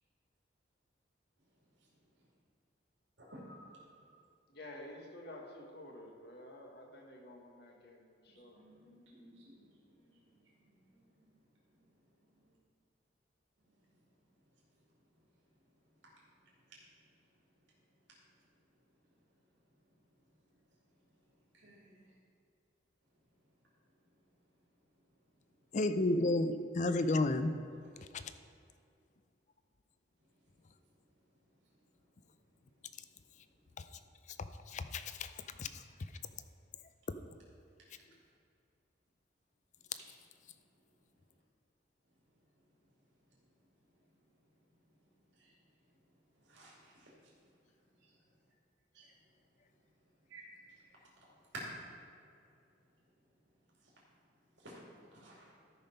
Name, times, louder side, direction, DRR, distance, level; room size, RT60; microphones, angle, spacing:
voice 1, 1.4-2.3 3.2-4.2 8.3-12.6 13.6-22.2 23.0-25.8 27.9-28.0 30.2-34.1 37.8-38.2 39.8-40.1 40.4-41.4 42.0-48.5 48.9-55.9, right 1 dB, 80° right, 2.5 m, -59 dB
voice 2, 4.5-8.6, left 1 dB, 60° left, 1.4 m, -51 dB
voice 3, 25.7-27.5 28.0-28.2 34.7-35.3 35.6-35.8, left 2 dB, 40° left, 0.4 m, -32 dB
13.0 x 5.5 x 5.5 m
head